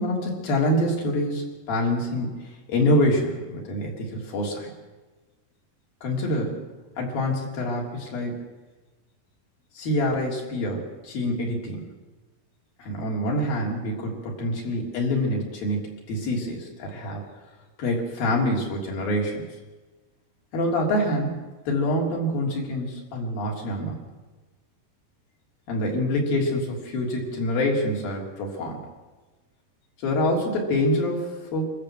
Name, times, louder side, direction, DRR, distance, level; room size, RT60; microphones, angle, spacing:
voice 1, 0.0-4.7 6.0-6.6 7.0-8.5 9.8-11.8 12.8-17.2 17.8-19.5 20.5-21.4 21.7-24.0 25.7-28.8 30.0-31.7, left 1 dB, 80° left, -1 dB, 5.2 m, -26 dB
25.5 x 14.0 x 7.6 m, 1.2 s
omnidirectional pair, 4.1 m